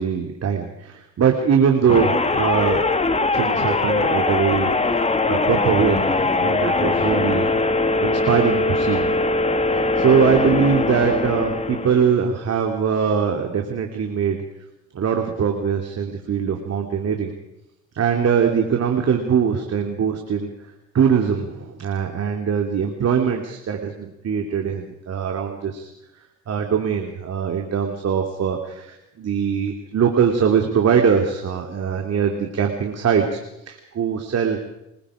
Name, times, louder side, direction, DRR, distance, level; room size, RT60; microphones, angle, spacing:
voice 1, 0.0-5.0 5.3-7.5 8.0-9.2 10.0-14.4 14.9-17.3 17.9-20.5 20.9-25.9 26.5-33.4 33.7-34.6, right 7 dB, 55° right, 3 dB, 2.9 m, -22 dB
sound 1, 1.9-12.2, left 3 dB, 20° left, 1.7 m, -21 dB
25.0 x 21.5 x 5.0 m, 0.88 s
cardioid pair, 90°, 30 cm